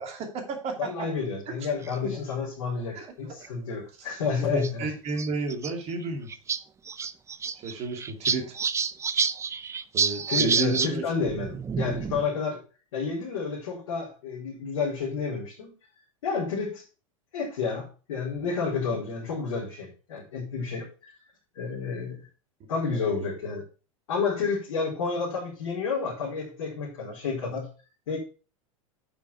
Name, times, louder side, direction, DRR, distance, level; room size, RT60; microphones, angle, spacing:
voice 1, 0.0-1.1 1.5-1.7 2.9-3.3 4.4-6.3 7.6-8.6 9.9-11.0 22.9-23.3, right 3 dB, 40° right, 4 dB, 2.6 m, -32 dB
voice 2, 0.8-4.9 10.3-12.6 12.9-15.7 16.2-16.8 17.3-21.1 21.5-22.2 22.7-23.6 24.1-27.7 28.1-28.2, left 5 dB, 70° left, -7 dB, 4.2 m, -30 dB
sound 1, 1.8-2.2 3.1-3.2 3.4-3.5 4.6-4.7 5.1-5.7 6.0-6.1 6.3-6.6 6.9-10.9 11.2-12.3, right 6 dB, 15° right, 0.5 m, -28 dB
8.7 x 5.9 x 4.7 m, 0.34 s
hypercardioid pair, 90°, 17 cm